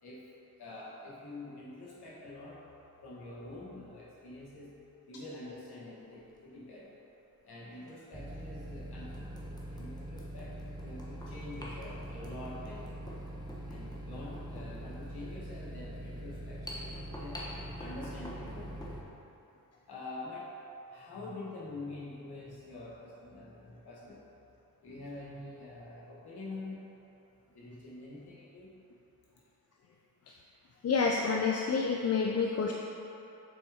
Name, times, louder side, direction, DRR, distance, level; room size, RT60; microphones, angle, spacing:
voice 1, 0.0-2.6 3.0-4.8 5.1-7.0 7.4-13.0 13.6-17.4 17.7-19.0 19.9-20.5 20.9-24.2 24.8-26.9 27.5-28.8, left 2 dB, 85° left, -6 dB, 1.5 m, -46 dB
sound 1, 6.1-6.4 7.8-7.9 8.5-8.6 9.1-19.0, equal, 10° left, 1.1 m, -48 dB
sound 2, 8.1-19.0, equal, 10° right, 0.7 m, -43 dB
voice 2, 30.8-32.7, left 5 dB, 40° left, 0 dB, 0.5 m, -28 dB
7.0 x 4.5 x 3.5 m, 2.8 s
cardioid pair, 75°, 37 cm